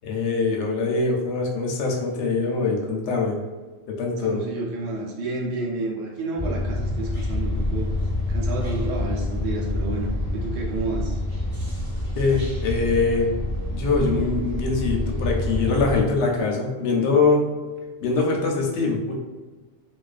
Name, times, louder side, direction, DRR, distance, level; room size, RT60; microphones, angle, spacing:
voice 1, 0.0-3.4 3.9-4.4 12.2-13.3 13.7-17.5 18.0-19.1, left 4 dB, 65° left, 0 dB, 0.8 m, -23 dB
voice 2, 4.2-11.2, right 2 dB, 75° right, -1 dB, 0.9 m, -30 dB
sound 1, 6.4-16.0, left 1 dB, 30° right, 0.9 m, -27 dB
2.4 x 2.2 x 2.3 m, 1.3 s
omnidirectional pair, 1.4 m